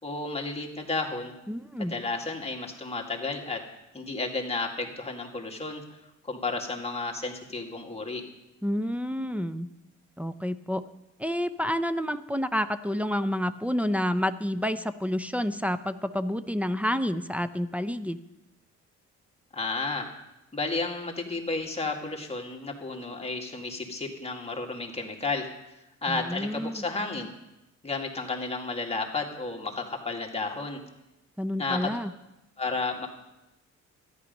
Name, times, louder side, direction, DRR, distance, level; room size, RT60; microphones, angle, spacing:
voice 1, 0.0-1.3 1.8-3.6 3.9-5.8 6.3-8.2 19.5-20.1 20.5-25.5 26.0-27.3 27.8-30.8 31.6-31.9 32.6-33.1, left 3 dB, 20° left, 1 dB, 2.1 m, -32 dB
voice 2, 1.5-1.9 8.6-9.7 10.2-10.8 11.2-18.2 26.1-26.8 31.4-32.1, equal, 5° right, 9 dB, 0.6 m, -29 dB
13.5 x 10.5 x 5.4 m, 0.94 s
cardioid pair, 90°, 30 cm